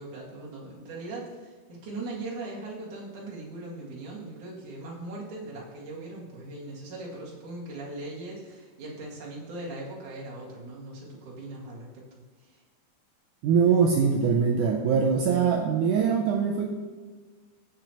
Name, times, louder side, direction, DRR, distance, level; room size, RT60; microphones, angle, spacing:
voice 1, 0.0-12.1 12.4-12.6, right 2 dB, 55° right, -5 dB, 3.2 m, -39 dB
voice 2, 13.4-16.7, right 6 dB, 90° right, 1 dB, 1.7 m, -22 dB
15.5 x 6.0 x 3.0 m, 1.4 s
omnidirectional pair, 4.4 m